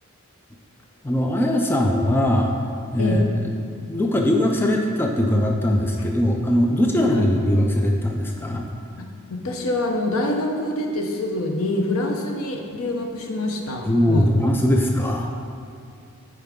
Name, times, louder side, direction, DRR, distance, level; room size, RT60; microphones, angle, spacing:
voice 1, 1.0-2.5 2.9-3.5 3.9-8.6 13.9-15.3, left 1 dB, 10° left, 1 dB, 0.4 m, -20 dB
voice 2, 6.8-7.2 9.0-14.3, left 1 dB, 70° left, 2 dB, 0.8 m, -26 dB
9.4 x 4.7 x 3.7 m, 2.4 s
head